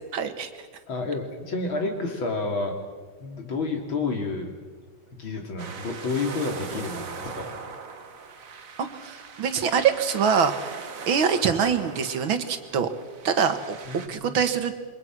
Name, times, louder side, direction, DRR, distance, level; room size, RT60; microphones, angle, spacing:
voice 1, 0.1-0.5 8.8-10.8 11.1-12.9 13.2-14.7, right 6 dB, 85° right, 9 dB, 2.4 m, -24 dB
voice 2, 0.9-2.8 3.2-4.5 5.1-7.5 13.9-14.4, left 3 dB, 85° left, 3 dB, 3.9 m, -30 dB
sound 1, 5.6-14.1, right 5 dB, 45° right, 1.7 m, -40 dB
28.0 x 23.0 x 6.2 m, 1.4 s
omnidirectional pair, 2.1 m